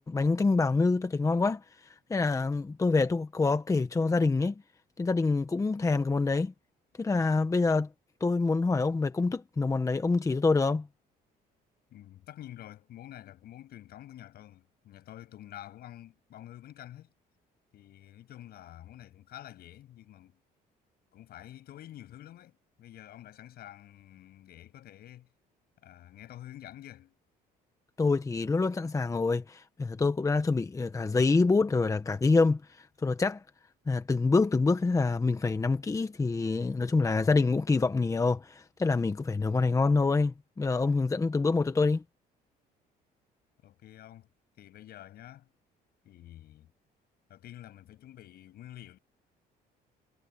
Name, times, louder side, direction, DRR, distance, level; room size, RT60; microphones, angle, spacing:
voice 1, 0.0-4.6 5.0-6.5 7.0-7.9 8.2-10.9 28.0-33.4 33.9-42.0, left 3 dB, 20° left, 1.2 m, -26 dB
voice 2, 11.9-17.1 17.7-20.4 21.1-25.3 25.8-27.1 43.6-44.3 44.6-45.5 46.0-46.7 47.3-49.0, left 13 dB, 70° left, 7.1 m, -48 dB
cardioid pair, 110°, 17 cm